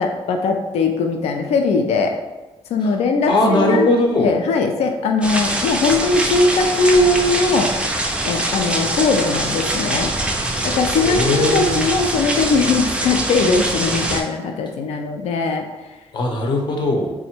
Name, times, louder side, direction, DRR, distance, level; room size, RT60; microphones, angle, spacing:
voice 1, 0.0-2.1 2.7-3.9 4.2-7.7 8.2-10.1 10.6-15.7, left 3 dB, 85° left, 4 dB, 0.4 m, -20 dB
voice 2, 3.3-4.3 11.0-11.8 16.1-17.1, left 1 dB, 50° left, 2 dB, 0.7 m, -19 dB
sound 1, 5.2-14.2, right 1 dB, 10° right, 0.4 m, -23 dB
3.6 x 2.0 x 4.3 m, 1.1 s
wide cardioid pair, 155°, 11 cm